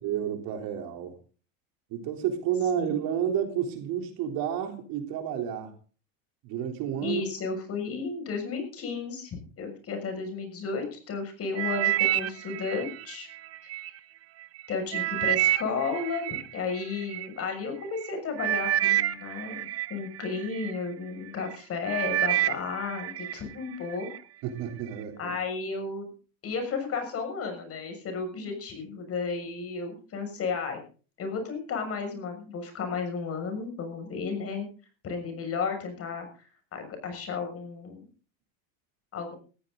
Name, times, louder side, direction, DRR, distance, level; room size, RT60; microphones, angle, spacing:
voice 1, 0.0-1.1 1.9-5.7 6.4-7.2 24.4-25.3, right 9 dB, 50° right, 5 dB, 3.8 m, -30 dB
voice 2, 7.0-13.3 13.6-14.0 14.7-24.1 25.2-26.1 26.4-30.8 31.2-34.7 35.0-38.0 39.1-39.3, left 5 dB, 35° left, 6 dB, 6.6 m, -33 dB
sound 1, 11.6-13.9 14.4-17.3 18.0-18.1 18.4-20.8 21.3-21.6 21.9-23.4 23.7-24.2 24.8-24.9, right 13 dB, 35° right, 0.9 m, -28 dB
18.0 x 15.0 x 3.9 m, 0.38 s
supercardioid pair, 135°, 43 cm